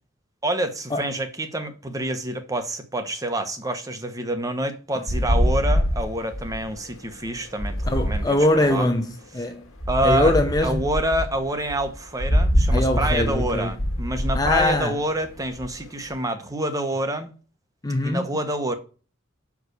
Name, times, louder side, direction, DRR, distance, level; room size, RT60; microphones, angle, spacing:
voice 1, 0.4-8.9 9.9-10.3 10.6-17.3 18.0-18.7, right 1 dB, 15° right, 1.0 m, -27 dB
sound 1, 5.1-9.1 9.8-16.1, equal, 80° left, 1.5 m, -25 dB
voice 2, 7.9-9.6 10.0-10.8 12.7-13.7 14.3-15.0 17.8-18.3, left 1 dB, 20° left, 0.6 m, -22 dB
6.1 x 4.8 x 6.5 m
head